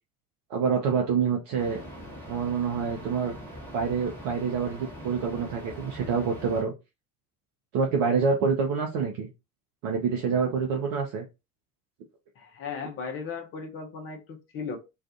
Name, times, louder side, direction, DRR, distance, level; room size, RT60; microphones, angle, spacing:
voice 1, 0.5-1.8 2.3-3.4 3.7-6.7 7.7-9.3 9.8-11.2, right 5 dB, 45° right, 0.6 m, -27 dB
sound 1, 1.6-6.6, equal, 5° left, 1.1 m, -42 dB
voice 2, 12.4-14.8, left 5 dB, 30° left, 0.6 m, -36 dB
2.4 x 2.3 x 2.5 m
figure-of-eight pair, 60°, 47 cm